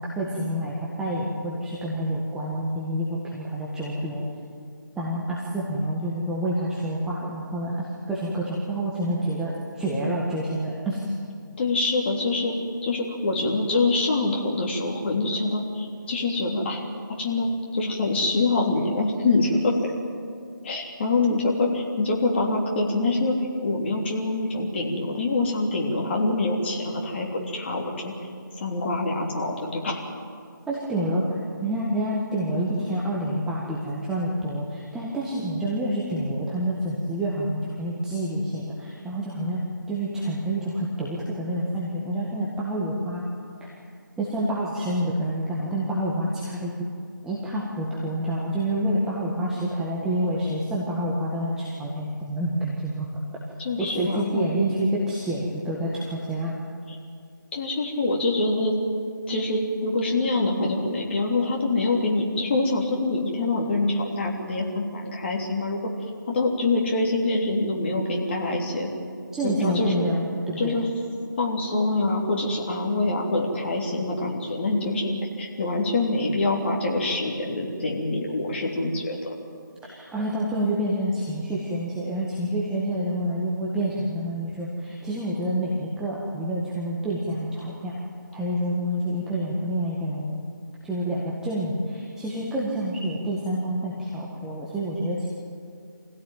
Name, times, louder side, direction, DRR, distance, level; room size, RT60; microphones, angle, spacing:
voice 1, 0.0-4.2 5.0-11.0 30.7-39.6 39.9-43.2 43.6-43.7 44.2-46.7 47.2-53.1 53.8-56.5 69.3-70.8 79.8-88.0 88.3-90.4 90.8-95.3, right 1 dB, 5° right, -6 dB, 1.7 m, -28 dB
voice 2, 11.6-12.5 12.8-16.8 17.2-17.5 17.7-19.7 20.6-28.1 28.6-30.0 53.6-54.4 57.5-58.8 59.3-65.8 66.3-68.9 69.4-70.0 70.6-70.9 71.4-75.1 75.4-79.3, left 2 dB, 30° left, -1 dB, 3.3 m, -25 dB
25.5 x 16.5 x 9.1 m, 2.3 s
figure-of-eight pair, 155°, 11 cm